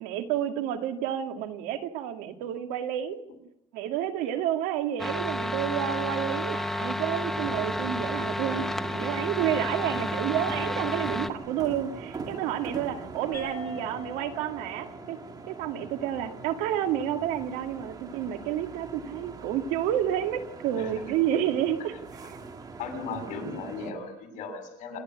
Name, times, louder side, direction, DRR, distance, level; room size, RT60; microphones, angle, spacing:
voice 1, 0.0-3.2 3.7-15.2 15.5-21.9 22.2-22.4, right 10 dB, 90° right, 7 dB, 2.2 m, -30 dB
sound 1, 5.0-11.3, left 1 dB, ahead, 1.1 m, -31 dB
sound 2, 7.2-23.9, right 4 dB, 30° right, 2.4 m, -42 dB
sound 3, 13.3-18.2, left 2 dB, 20° left, 7.8 m, -46 dB
voice 2, 22.8-25.0, left 4 dB, 60° left, 4 dB, 7.1 m, -36 dB
28.0 x 11.0 x 9.8 m, 0.83 s
cardioid pair, 130°, 14 cm